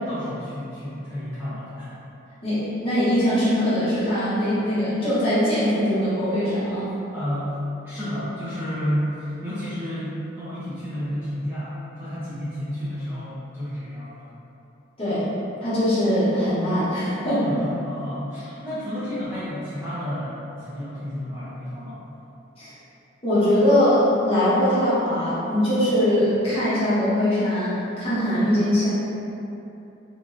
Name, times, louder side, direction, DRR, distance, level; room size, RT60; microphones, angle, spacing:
voice 1, 0.0-1.9 7.1-7.6 7.8-14.3 17.4-22.0, equal, 10° right, -12 dB, 0.5 m, -31 dB
voice 2, 2.4-6.9 15.0-15.3 15.6-17.5 22.6-22.7 23.2-28.9, equal, 30° left, -13 dB, 1.0 m, -21 dB
3.1 x 2.5 x 2.4 m, 2.9 s
head